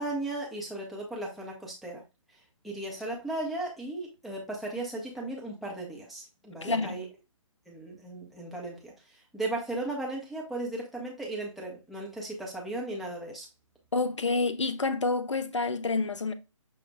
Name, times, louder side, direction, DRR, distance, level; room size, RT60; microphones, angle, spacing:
voice 1, 0.0-2.0 2.6-7.1 7.7-13.5, right 2 dB, ahead, 0.4 m, -36 dB
voice 2, 6.6-7.0 13.9-16.3, left 3 dB, 65° left, 0.6 m, -28 dB
6.1 x 2.1 x 3.4 m
figure-of-eight pair, 140°, 17 cm